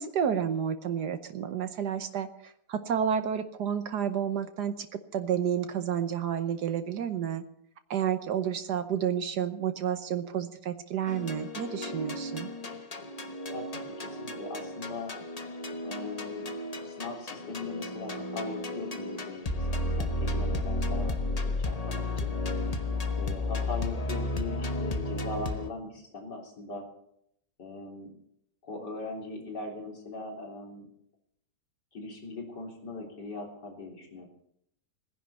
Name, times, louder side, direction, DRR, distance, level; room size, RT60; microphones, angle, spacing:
voice 1, 0.0-4.9 5.1-7.4 7.9-12.5, right 8 dB, 75° right, 10 dB, 1.5 m, -30 dB
sound 1, 11.1-25.7, left 2 dB, 25° left, 1.0 m, -33 dB
voice 2, 13.5-15.1 15.8-16.4 16.7-22.3 23.2-26.8 27.6-28.1 28.6-30.9 31.9-34.3, left 3 dB, 75° left, 1 dB, 4.2 m, -40 dB
19.0 x 10.5 x 7.0 m, 0.72 s
omnidirectional pair, 1.8 m